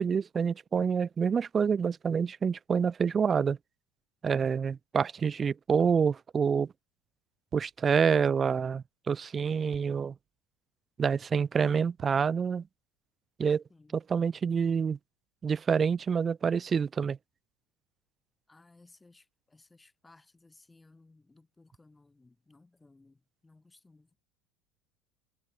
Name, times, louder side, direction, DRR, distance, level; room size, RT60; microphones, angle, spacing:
voice 1, 0.0-3.6 4.2-6.7 7.5-10.1 11.0-12.6 13.4-13.6 14.1-15.0 15.4-17.2, right 6 dB, 30° right, 0.4 m, -27 dB
sound 1, 7.5-8.1 9.7-10.5 12.0-12.8, right 11 dB, 45° right, 6.6 m, -56 dB
voice 2, 13.7-14.0 18.5-24.2, left 3 dB, 15° left, 7.6 m, -60 dB
supercardioid pair, 105°, 0 cm